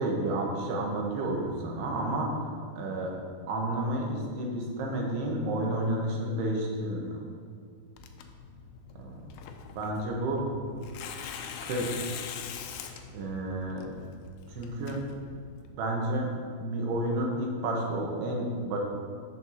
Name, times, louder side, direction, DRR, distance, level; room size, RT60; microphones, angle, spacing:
voice 1, 0.0-2.4 2.8-3.1 3.5-7.1 9.0-9.1 9.8-10.4 11.6-12.0 13.1-13.9 14.5-15.0 15.8-16.3 16.6-18.8, right 1 dB, 75° right, -1 dB, 2.9 m, -30 dB
Tearing, 8.0-15.7, left 7 dB, 85° left, 2.1 m, -43 dB
12.5 x 5.7 x 2.8 m, 2.2 s
omnidirectional pair, 4.9 m